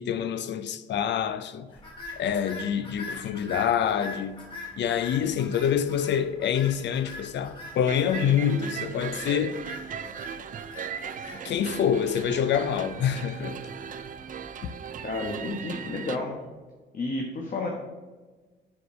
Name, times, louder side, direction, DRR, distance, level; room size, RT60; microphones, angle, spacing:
voice 1, 0.0-1.7 2.2-4.5 4.8-9.6 11.0-13.6 14.6-14.7, left 8 dB, 65° left, 0.5 m, -26 dB
sound 1, 1.8-16.1, left 1 dB, 25° left, 1.9 m, -44 dB
sound 2, 7.8-16.2, right 7 dB, 45° right, 0.4 m, -38 dB
voice 2, 15.0-16.3 16.9-17.7, left 2 dB, 45° left, 1.1 m, -31 dB
5.1 x 4.9 x 6.1 m
cardioid pair, 90°, 20 cm